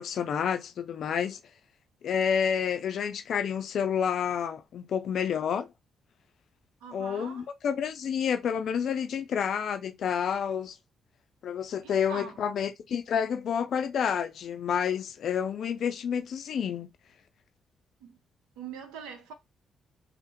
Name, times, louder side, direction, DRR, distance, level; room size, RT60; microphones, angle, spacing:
voice 1, 0.0-1.4 2.0-5.7 6.9-10.8 11.4-16.9, left 7 dB, 60° left, 0.4 m, -29 dB
voice 2, 6.8-7.5 11.8-12.5 18.0-18.2 18.6-19.3, right 6 dB, 80° right, 0.7 m, -43 dB
3.3 x 2.1 x 2.9 m
hypercardioid pair, 45°, 0 cm